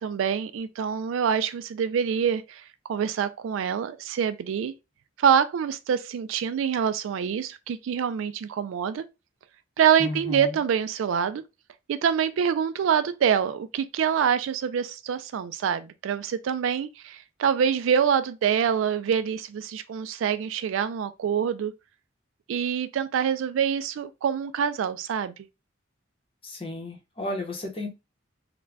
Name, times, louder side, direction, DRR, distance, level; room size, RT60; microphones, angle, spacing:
voice 1, 0.0-2.6 2.9-4.7 5.2-9.1 9.8-11.4 11.9-21.7 22.5-25.3, right 7 dB, 85° right, 0.3 m, -25 dB
voice 2, 10.0-10.6 26.4-27.9, left 1 dB, 30° left, 0.7 m, -33 dB
2.4 x 2.2 x 3.2 m
head